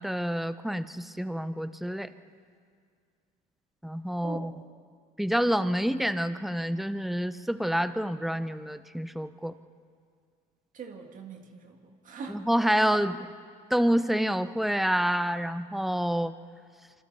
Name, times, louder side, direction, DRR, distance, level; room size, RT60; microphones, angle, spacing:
voice 1, 0.0-2.1 3.8-4.5 5.2-9.5 12.3-13.2 13.7-16.3, equal, ahead, 11 dB, 0.7 m, -28 dB
voice 2, 4.2-4.5 10.7-12.4 12.9-13.0, right 5 dB, 50° right, 3 dB, 1.9 m, -42 dB
26.0 x 25.5 x 4.1 m, 2.1 s
cardioid pair, 110°, 17 cm